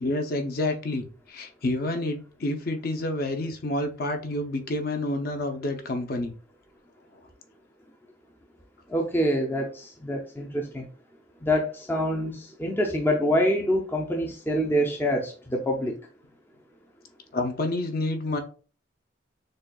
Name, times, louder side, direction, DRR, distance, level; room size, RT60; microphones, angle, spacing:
voice 1, 0.0-6.3 17.3-18.4, left 2 dB, 50° left, 5 dB, 0.6 m, -29 dB
voice 2, 8.9-10.9 11.4-15.9, equal, 10° left, 2 dB, 0.4 m, -26 dB
6.3 x 2.2 x 2.3 m, 0.39 s
head